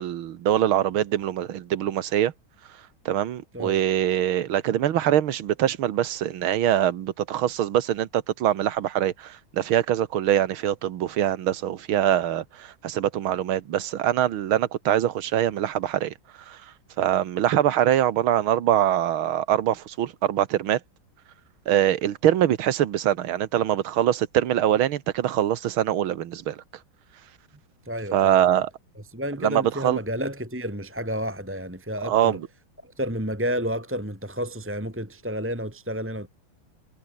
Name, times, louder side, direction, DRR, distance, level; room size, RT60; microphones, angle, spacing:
voice 1, 0.0-2.3 3.1-16.1 16.5-16.6 17.0-20.8 21.7-26.6 28.1-28.7 29.4-30.0 32.0-32.5, right 11 dB, 75° right, 2.0 m, -23 dB
voice 2, 27.9-28.6 29.1-32.4 32.8-36.3, equal, 5° right, 2.6 m, -30 dB
omnidirectional pair, 2.3 m